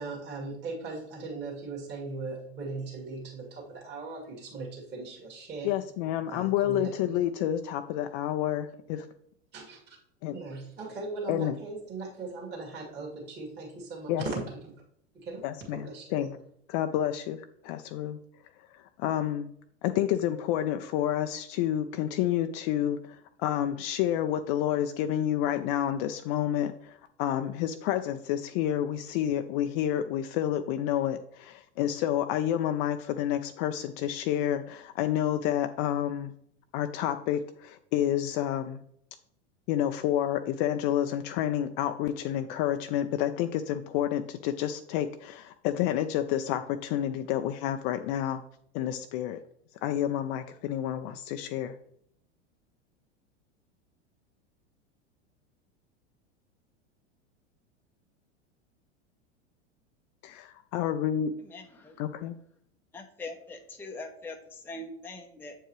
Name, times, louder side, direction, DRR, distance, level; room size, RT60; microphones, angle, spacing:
voice 1, 0.0-5.7 6.3-7.2 9.5-10.0 10.3-14.8 15.1-15.4 15.7-16.3, right 3 dB, 30° right, -2 dB, 2.0 m, -39 dB
voice 2, 5.6-9.1 10.2-10.4 11.3-11.6 14.1-14.3 15.4-16.3 16.7-18.2 18.7-19.5 19.8-36.3 36.7-38.8 39.7-48.4 48.7-49.4 49.8-51.8 60.2-61.3 62.0-62.3, left 11 dB, 50° left, 8 dB, 0.5 m, -29 dB
voice 3, 61.5-61.9 62.9-64.4 64.6-65.6, left 2 dB, 5° left, 3 dB, 0.6 m, -42 dB
7.7 x 4.6 x 3.1 m, 0.69 s
hypercardioid pair, 100°, 35 cm